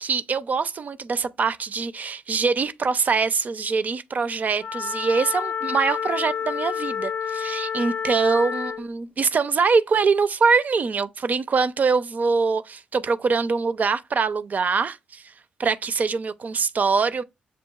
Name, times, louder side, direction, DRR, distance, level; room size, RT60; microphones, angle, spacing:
voice 1, 0.0-15.2 15.6-17.2, right 5 dB, 50° right, 0.5 m, -23 dB
Wind instrument woodwind instrument, 4.6-8.9, left 7 dB, 40° left, 0.4 m, -29 dB
7.2 x 2.5 x 2.3 m
supercardioid pair, 50°, 4 cm